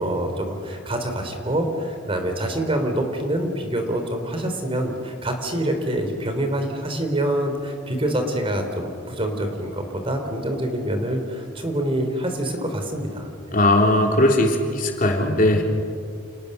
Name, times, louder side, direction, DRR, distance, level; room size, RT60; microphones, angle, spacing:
voice 1, 0.0-13.6, right 1 dB, 30° right, 5 dB, 3.6 m, -26 dB
voice 2, 13.5-15.6, left 1 dB, 45° left, 1 dB, 3.4 m, -18 dB
29.5 x 29.5 x 6.8 m, 2.3 s
head